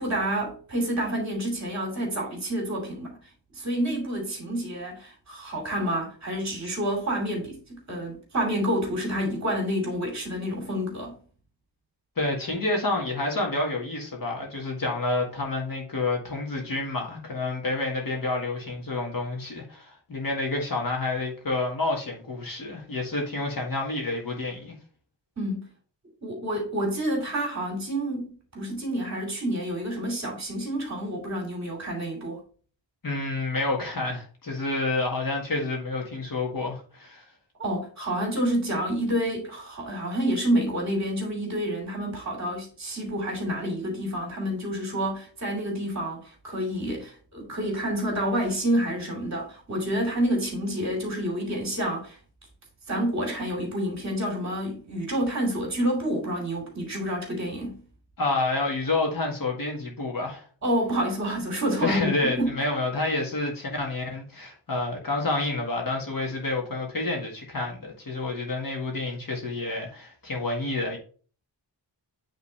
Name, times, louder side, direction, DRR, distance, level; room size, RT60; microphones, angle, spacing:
voice 1, 0.0-3.1 3.5-7.6 7.9-11.2 25.4-25.7 26.2-32.4 37.6-52.2 52.9-57.8 60.6-62.6, equal, 40° right, 2.5 m, -28 dB
voice 2, 12.2-24.7 33.0-37.3 58.2-60.5 61.8-71.0, left 2 dB, 50° left, 1.9 m, -29 dB
8.7 x 3.8 x 3.3 m
wide cardioid pair, 160°, 44 cm